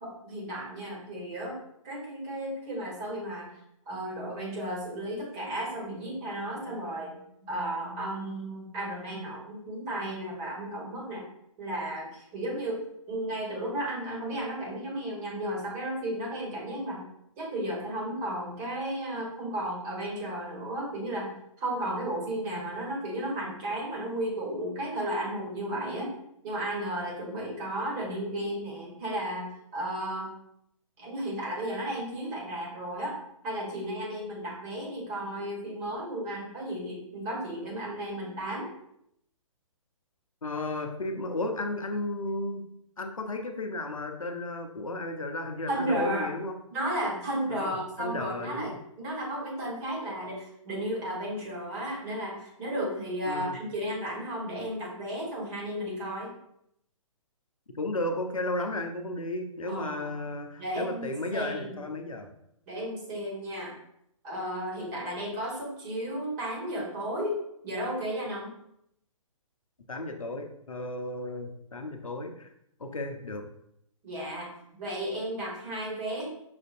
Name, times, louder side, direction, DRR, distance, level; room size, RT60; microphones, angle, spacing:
voice 1, 0.0-1.6 1.8-3.5 3.9-11.2 11.6-17.0 17.4-26.2 26.4-30.3 31.0-38.7 45.7-46.3 46.7-56.3 59.6-60.2 60.6-61.8 62.7-63.8 64.2-67.4 67.6-68.5 74.0-74.5 74.8-76.3, right 1 dB, 30° right, -3 dB, 1.4 m, -34 dB
voice 2, 40.4-42.6 43.0-46.6 47.5-48.8 53.3-53.6 57.7-62.3 69.9-72.5 72.8-73.5, left 2 dB, 80° left, 5 dB, 0.6 m, -34 dB
5.6 x 2.6 x 2.5 m, 0.75 s
figure-of-eight pair, 125°, 17 cm